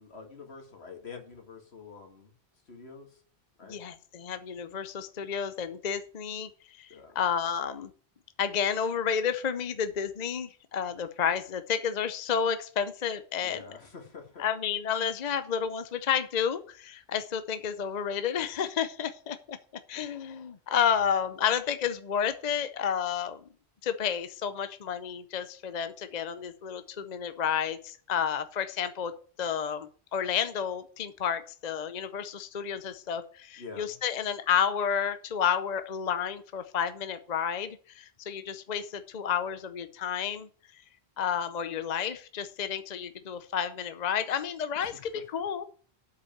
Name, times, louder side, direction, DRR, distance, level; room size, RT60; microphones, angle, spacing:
voice 1, 0.0-2.3 2.7-3.1 3.6-3.8 6.9-7.2 13.4-14.4 19.9-20.0 33.6-33.9 44.8-45.0, left 5 dB, 80° left, 3 dB, 2.2 m, -46 dB
voice 2, 3.7-6.5 6.8-7.9 8.4-13.6 14.4-19.6 19.9-23.4 23.8-29.1 29.4-40.5 41.2-45.6, left 8 dB, 45° left, 11 dB, 0.7 m, -31 dB
8.3 x 5.3 x 7.2 m, 0.44 s
omnidirectional pair, 1.1 m